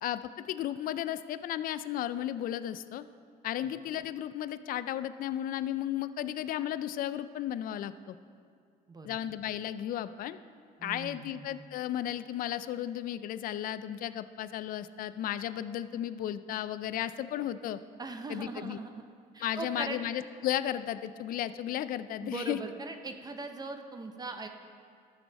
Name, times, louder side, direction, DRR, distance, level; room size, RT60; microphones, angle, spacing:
voice 1, 0.5-3.0 3.4-8.2 9.0-10.4 10.8-17.8 18.3-18.8 19.4-22.6, left 11 dB, 55° left, 13 dB, 0.4 m, -34 dB
voice 2, 10.8-11.5 18.0-19.0 19.3-20.0 22.2-24.5, right 3 dB, 25° right, 6 dB, 0.7 m, -40 dB
13.5 x 6.2 x 4.1 m, 2.3 s
cardioid pair, 110°, 17 cm